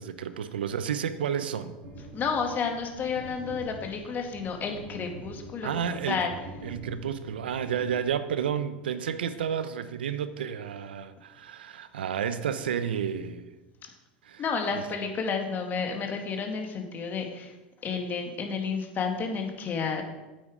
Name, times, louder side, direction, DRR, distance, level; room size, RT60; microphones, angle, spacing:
voice 1, 0.0-1.7 5.6-6.2 6.6-13.5 14.2-14.4, right 8 dB, 85° right, 12 dB, 0.7 m, -31 dB
sound 1, 1.8-8.4, right 2 dB, 70° right, 3.8 m, -45 dB
voice 2, 2.1-6.3 14.4-17.6 17.8-20.0, left 5 dB, 35° left, 3 dB, 2.0 m, -31 dB
8.8 x 8.7 x 4.9 m, 1.1 s
hypercardioid pair, 90°, 5 cm